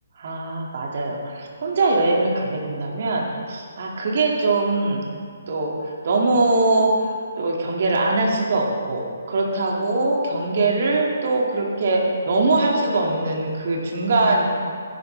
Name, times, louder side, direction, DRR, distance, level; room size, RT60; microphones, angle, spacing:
voice 1, 0.2-5.0 5.5-14.5, right 2 dB, 55° right, -1 dB, 2.4 m, -22 dB
16.0 x 11.5 x 3.4 m, 2.1 s
hypercardioid pair, 155°, 0 cm